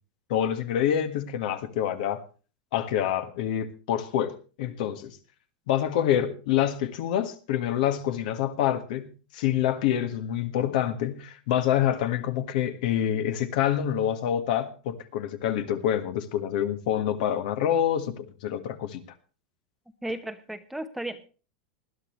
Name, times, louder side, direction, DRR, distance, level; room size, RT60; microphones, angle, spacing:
voice 1, 0.3-2.2 2.7-5.2 5.7-19.0, left 10 dB, 60° left, 9 dB, 1.7 m, -27 dB
voice 2, 20.0-21.3, right 1 dB, 5° right, 9 dB, 0.9 m, -34 dB
20.0 x 12.0 x 3.2 m, 0.36 s
supercardioid pair, 145°, 5 cm